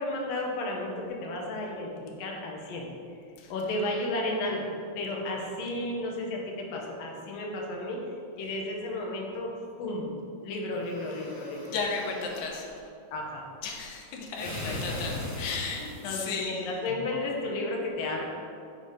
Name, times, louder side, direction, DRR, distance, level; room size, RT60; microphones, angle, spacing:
voice 1, 0.0-2.9 3.5-4.7 5.0-8.0 8.4-9.5 9.8-10.2 10.4-11.8 13.1-13.5 14.4-15.2 16.0-18.2, left 2 dB, 65° left, 0 dB, 2.0 m, -33 dB
sound 1, 10.8-12.5 14.3-16.3, left 1 dB, 50° left, 2.6 m, -39 dB
voice 2, 11.7-12.7 13.6-16.9, left 4 dB, 85° left, 0 dB, 2.3 m, -34 dB
7.4 x 4.0 x 4.9 m, 2.5 s
omnidirectional pair, 3.3 m